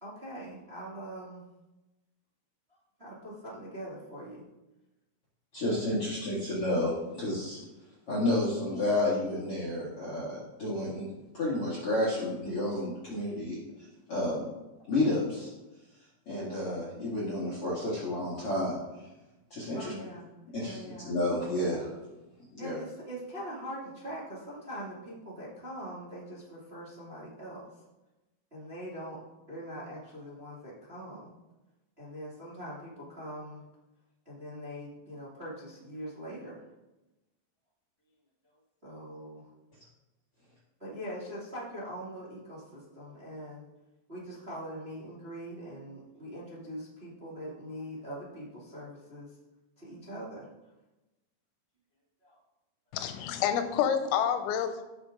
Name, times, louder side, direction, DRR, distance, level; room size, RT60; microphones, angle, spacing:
voice 1, 0.0-1.4 2.7-4.4 19.7-21.1 22.6-27.7 28.5-29.2 29.5-31.3 32.0-33.6 34.2-36.6 38.8-39.5 40.8-43.6 44.1-49.3 49.8-50.5 52.2-52.4, equal, 20° right, -7 dB, 1.6 m, -42 dB
voice 2, 5.5-7.6 8.1-11.1 11.3-13.6 14.1-14.5 14.9-15.5 16.3-18.8 19.5-19.9 20.5-21.9 22.5-22.8, left 1 dB, 45° left, -6 dB, 2.0 m, -30 dB
voice 3, 52.9-54.8, left 8 dB, 85° left, 8 dB, 3.2 m, -28 dB
16.0 x 6.2 x 3.7 m, 1.0 s
omnidirectional pair, 5.2 m